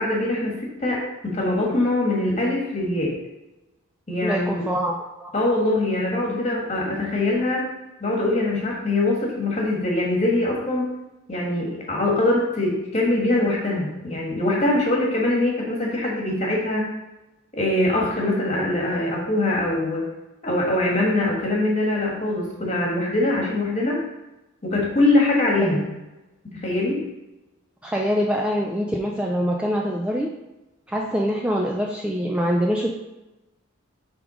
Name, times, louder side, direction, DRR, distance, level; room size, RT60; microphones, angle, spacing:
voice 1, 0.0-3.1 4.1-4.6 5.3-7.7 8.0-10.9 11.3-16.9 17.5-20.0 20.4-24.0 24.6-25.9 26.5-27.0, left 2 dB, 30° left, -2 dB, 1.5 m, -23 dB
voice 2, 4.2-5.3 25.6-25.9 27.8-30.3 30.9-33.0, equal, 5° right, -1 dB, 0.4 m, -24 dB
7.1 x 3.6 x 4.9 m, 1.0 s
head